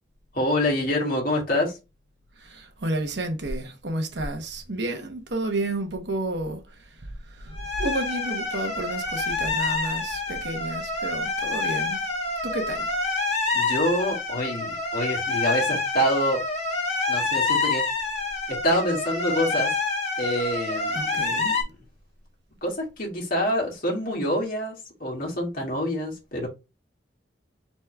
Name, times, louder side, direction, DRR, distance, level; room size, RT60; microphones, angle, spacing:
voice 1, 0.3-1.8 13.5-16.4 17.1-17.9 18.5-19.8 20.2-21.7 22.6-26.5, equal, 50° left, 2.0 m, -26 dB
voice 2, 2.4-12.0 12.4-12.9 20.9-21.5, right 1 dB, 75° right, 1.1 m, -31 dB
sound 1, 7.5-21.6, left 3 dB, 35° left, 1.7 m, -27 dB
4.2 x 3.5 x 3.3 m
head